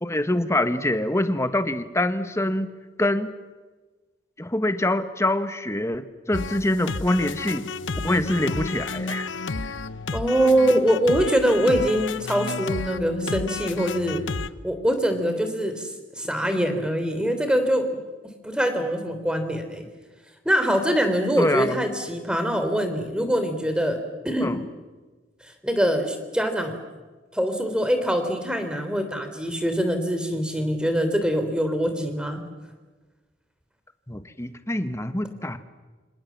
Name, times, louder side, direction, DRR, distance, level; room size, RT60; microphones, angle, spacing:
voice 1, 0.0-2.7 3.0-3.3 4.4-7.7 8.0-9.3 21.4-21.8 24.4-24.6 34.1-35.6, left 1 dB, 15° left, 10 dB, 1.4 m, -25 dB
sound 1, 6.3-14.5, left 3 dB, 85° left, 0.9 m, -31 dB
voice 2, 10.1-14.2 14.6-15.9 16.2-17.9 18.4-19.8 20.5-24.0 24.2-24.6 25.4-26.8 27.3-32.4, equal, 5° right, 7 dB, 3.4 m, -23 dB
28.5 x 26.5 x 7.5 m, 1.3 s
head